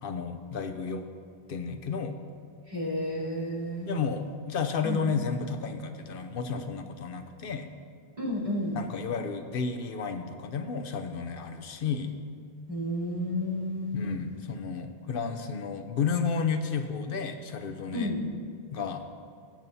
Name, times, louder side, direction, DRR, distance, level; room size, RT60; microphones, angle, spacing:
voice 1, 0.0-1.1 1.5-2.2 3.9-7.7 8.7-12.1 13.9-18.1 18.7-19.0, left 5 dB, 60° left, 7 dB, 0.9 m, -32 dB
voice 2, 2.7-3.9 4.8-5.0 8.2-8.8 12.7-14.2 17.9-18.3, left 1 dB, 45° right, -10 dB, 3.4 m, -31 dB
18.0 x 8.8 x 2.7 m, 2.3 s
omnidirectional pair, 1.0 m